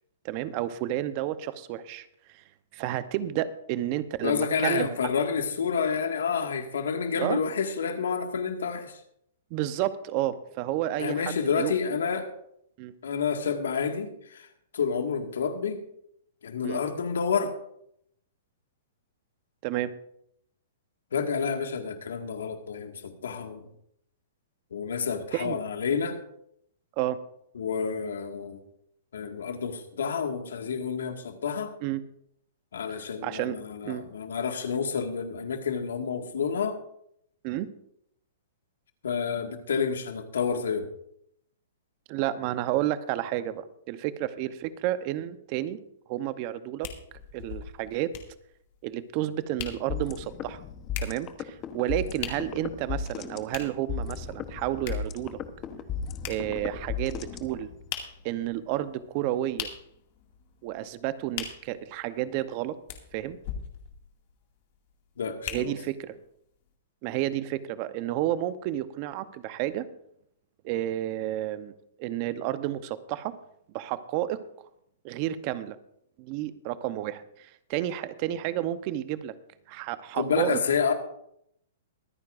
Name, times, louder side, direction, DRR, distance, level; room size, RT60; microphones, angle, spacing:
voice 1, 0.2-2.4 2.7-4.9 7.2-7.4 9.5-11.7 12.8-12.9 16.6-16.8 19.6-19.9 25.3-25.6 27.0-27.2 31.8-32.0 33.2-33.6 33.8-34.0 37.4-37.7 42.1-45.8 46.1-46.9 47.3-48.1 48.8-50.6 51.0-55.4 56.3-57.7 58.2-59.7 60.6-62.8 63.1-63.4 65.5-66.1 67.0-69.9 70.6-73.4 73.7-74.4 75.0-75.8 76.2-79.3 79.7-80.6, right 13 dB, 40° right, 13 dB, 0.9 m, -31 dB
voice 2, 4.2-9.0 11.0-12.3 13.0-14.5 14.7-15.8 16.4-17.6 21.1-23.7 24.7-26.2 27.6-28.6 29.1-31.7 32.7-36.8 39.0-40.9 65.2-65.7 80.1-80.9, left 6 dB, 85° left, 5 dB, 1.9 m, -29 dB
sound 1, 46.8-66.1 66.7-66.8, left 9 dB, 50° left, 2.2 m, -42 dB
sound 2, 49.9-57.9, left 6 dB, 30° left, 1.0 m, -36 dB
23.5 x 9.5 x 2.6 m, 0.73 s
hypercardioid pair, 140°, 0 cm